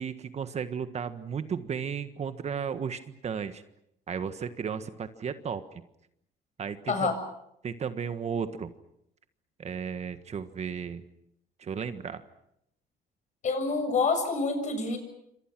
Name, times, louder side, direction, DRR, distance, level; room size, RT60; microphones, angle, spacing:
voice 1, 0.0-3.6 4.1-5.6 6.6-7.1 7.6-8.7 9.6-11.0 11.6-12.2, right 7 dB, 40° right, 10 dB, 1.5 m, -34 dB
voice 2, 13.4-15.0, left 4 dB, 45° left, 7 dB, 7.5 m, -27 dB
29.0 x 26.0 x 6.2 m, 0.77 s
cardioid pair, 110°, 17 cm